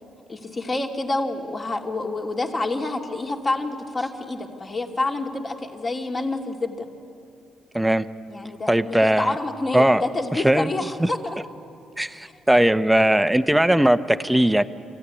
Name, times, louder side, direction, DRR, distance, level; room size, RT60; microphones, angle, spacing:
voice 1, 0.3-6.9 8.3-11.4, left 2 dB, 30° left, 2 dB, 2.6 m, -28 dB
voice 2, 7.7-8.1 8.7-9.3 9.7-10.0 10.4-10.7 11.0-11.1 12.0-14.6, right 1 dB, 5° right, 10 dB, 0.8 m, -19 dB
26.0 x 15.0 x 9.8 m, 2.6 s
cardioid pair, 90°, 0 cm